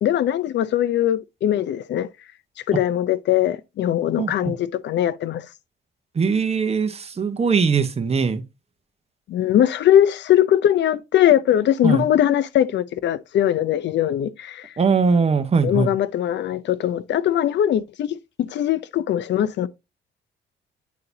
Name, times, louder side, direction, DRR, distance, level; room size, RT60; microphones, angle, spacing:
voice 1, 0.0-2.1 2.7-5.5 9.3-14.7 15.6-19.7, left 11 dB, 65° left, 0.5 m, -21 dB
voice 2, 4.2-4.5 6.1-8.4 11.8-12.1 14.8-15.9, right 5 dB, 30° right, 1.0 m, -21 dB
9.4 x 3.9 x 2.8 m
cardioid pair, 90°, 20 cm